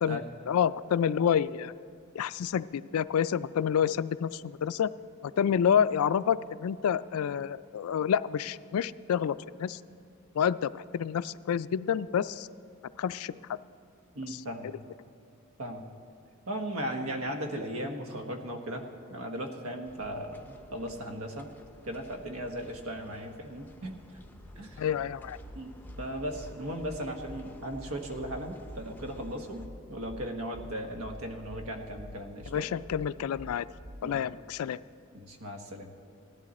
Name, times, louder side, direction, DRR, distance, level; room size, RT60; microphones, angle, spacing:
voice 1, 0.0-1.7 2.1-4.9 5.2-9.8 10.3-12.5 13.0-13.3 14.3-14.4 24.8-25.4 32.5-33.7 34.0-34.8, left 8 dB, 85° left, 16 dB, 0.3 m, -28 dB
voice 2, 14.1-14.7 15.6-15.9 16.5-18.8 19.1-21.5 21.8-24.0 24.6-24.8 25.5-25.7 26.0-32.7 34.0-34.2 35.1-35.9, right 1 dB, 85° right, 4 dB, 1.3 m, -37 dB
sound 1, 19.9-29.7, left 1 dB, 10° left, 0.5 m, -52 dB
sound 2, 25.3-34.3, equal, 45° right, 1.0 m, -47 dB
17.5 x 12.5 x 4.2 m, 2.2 s
head